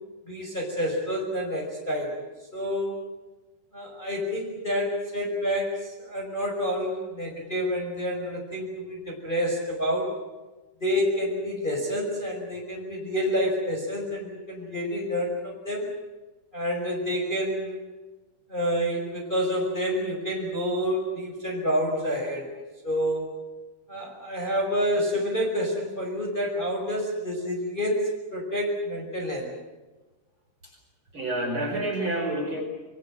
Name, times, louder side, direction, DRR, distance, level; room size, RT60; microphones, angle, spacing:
voice 1, 0.3-2.2 2.5-3.0 3.7-10.1 10.8-15.9 16.5-17.8 18.5-22.5 22.8-23.3 23.9-29.5, equal, 10° left, 0 dB, 5.4 m, -28 dB
voice 2, 31.1-32.6, right 1 dB, 25° right, 0 dB, 5.2 m, -28 dB
26.5 x 23.0 x 7.7 m, 1.1 s
omnidirectional pair, 5.4 m